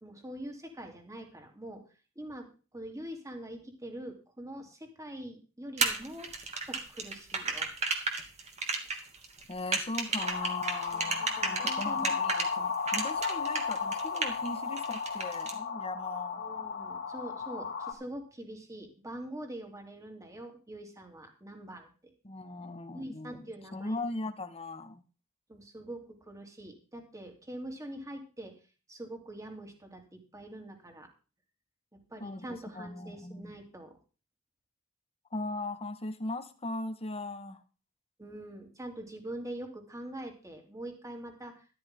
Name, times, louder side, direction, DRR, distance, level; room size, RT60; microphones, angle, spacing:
voice 1, 0.0-1.8 2.2-2.5 2.7-6.3 6.7-7.7 10.9-12.1 16.4-22.1 22.9-24.0 25.5-28.5 28.9-31.1 31.9-34.0 38.2-41.7, right 1 dB, 15° right, 3 dB, 3.4 m, -44 dB
sound 1, 5.8-12.5 12.9-14.5 14.8-15.5, right 4 dB, 35° right, 2.7 m, -32 dB
voice 2, 9.5-16.4 22.2-25.0 32.2-33.6 35.3-37.6, left 2 dB, 30° left, 8 dB, 1.7 m, -39 dB
sound 2, 10.2-17.9, left 5 dB, 55° left, 3.1 m, -34 dB
13.5 x 13.5 x 3.9 m, 0.34 s
head